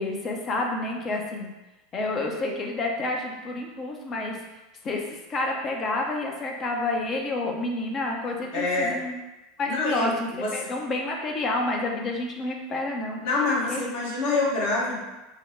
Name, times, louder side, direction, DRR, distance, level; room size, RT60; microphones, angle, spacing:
voice 1, 0.0-1.5 1.9-4.4 4.8-9.2 9.6-13.2 13.7-13.9 14.3-14.4, left 2 dB, 35° left, 1 dB, 0.8 m, -29 dB
voice 2, 8.5-9.0 9.7-10.5 13.2-15.0, left 3 dB, 60° left, -5 dB, 1.4 m, -26 dB
3.8 x 2.3 x 4.5 m, 1.1 s
figure-of-eight pair, 80°, 0 cm